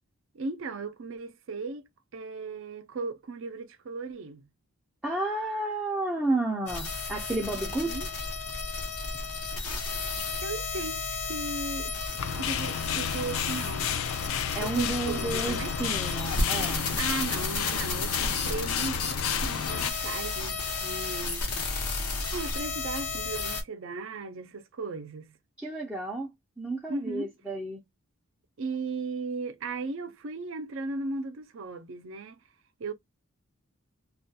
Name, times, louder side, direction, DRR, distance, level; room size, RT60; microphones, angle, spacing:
voice 1, 0.3-4.4 7.5-8.1 10.4-11.9 12.3-14.0 14.6-15.8 17.0-21.5 22.3-25.4 26.9-27.3 28.6-32.4 32.8-32.9, right 3 dB, 60° right, 0.5 m, -37 dB
voice 2, 5.0-8.0 14.5-16.9 25.6-27.8, right 2 dB, 5° right, 0.4 m, -31 dB
sound 1, 6.7-23.6, left 3 dB, 90° left, 0.9 m, -33 dB
sound 2, 12.2-19.9, left 8 dB, 65° left, 0.3 m, -32 dB
2.3 x 2.2 x 2.6 m
head